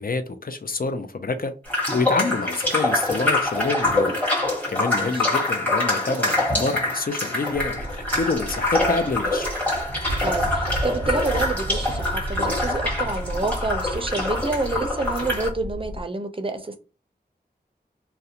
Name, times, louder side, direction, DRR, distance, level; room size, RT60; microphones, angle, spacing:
voice 1, 0.0-1.5 1.9-4.2 4.7-7.9 8.1-9.5, left 3 dB, 55° left, 0.4 m, -27 dB
sound 1, 1.7-15.5, left 2 dB, 10° left, 1.1 m, -25 dB
voice 2, 4.9-5.3 10.2-16.8, right 3 dB, 30° right, 0.5 m, -28 dB
sound 2, 7.5-16.0, right 1 dB, 90° right, 0.4 m, -32 dB
2.4 x 2.1 x 2.8 m
wide cardioid pair, 45°, 18 cm